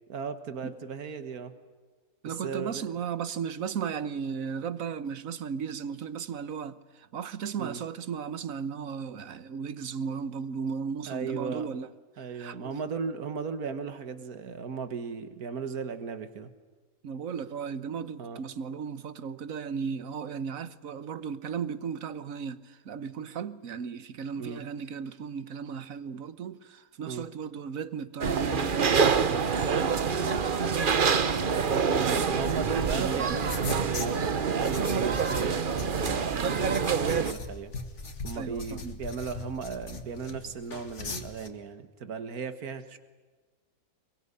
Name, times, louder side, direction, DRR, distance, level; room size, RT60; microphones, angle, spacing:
voice 1, 0.1-1.5 2.3-2.9 7.6-7.8 11.1-11.7 12.2-16.5 18.2-18.4 24.4-24.6 27.0-27.3 32.3-37.7 38.2-43.0, right 6 dB, 85° right, 2.0 m, -36 dB
voice 2, 2.2-11.9 12.2-12.8 17.0-31.3 31.7-32.4 32.6-33.4 38.3-39.0, right 6 dB, 65° right, 1.4 m, -36 dB
sound 1, 28.2-37.3, right 6 dB, 40° right, 1.0 m, -26 dB
sound 2, 32.4-41.5, left 3 dB, 55° left, 2.2 m, -40 dB
23.5 x 22.5 x 9.9 m
omnidirectional pair, 1.5 m